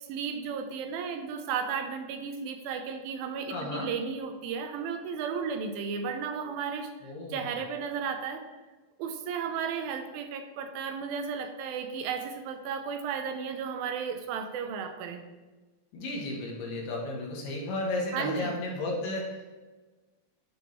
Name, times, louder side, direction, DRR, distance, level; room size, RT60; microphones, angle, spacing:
voice 1, 0.1-6.9 7.3-8.4 9.0-15.2 18.1-18.6, right 6 dB, 80° right, 7 dB, 2.3 m, -34 dB
voice 2, 3.5-3.9 7.0-7.5 15.9-19.5, left 2 dB, 70° left, -2 dB, 2.5 m, -34 dB
10.5 x 3.7 x 3.0 m, 1.2 s
omnidirectional pair, 4.2 m